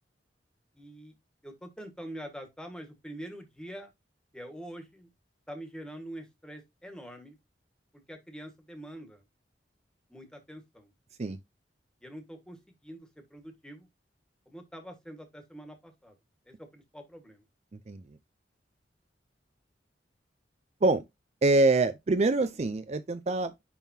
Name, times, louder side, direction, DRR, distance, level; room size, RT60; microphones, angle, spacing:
voice 1, 0.7-1.1 1.4-3.9 4.3-5.1 5.5-7.3 8.1-9.2 10.1-10.9 12.0-12.6 12.8-13.9 14.5-16.1 16.5-17.4, right 1 dB, 5° left, 1.6 m, -45 dB
voice 2, 21.4-23.6, right 2 dB, 35° right, 0.5 m, -25 dB
10.5 x 3.6 x 2.7 m
head